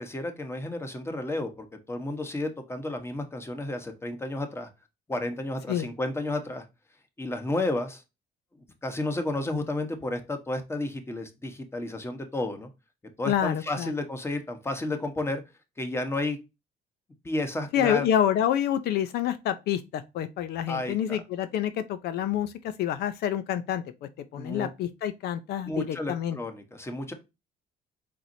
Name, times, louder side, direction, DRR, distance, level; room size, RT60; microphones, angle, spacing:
voice 1, 0.0-4.7 5.1-6.6 7.2-8.0 8.8-12.7 13.2-15.4 15.8-16.4 17.2-18.1 20.7-21.2 24.3-24.7 25.7-27.1, left 2 dB, 15° left, 1.1 m, -32 dB
voice 2, 13.3-13.9 17.7-26.4, left 10 dB, 70° left, 0.6 m, -28 dB
4.7 x 4.2 x 2.7 m
cardioid pair, 110°, 17 cm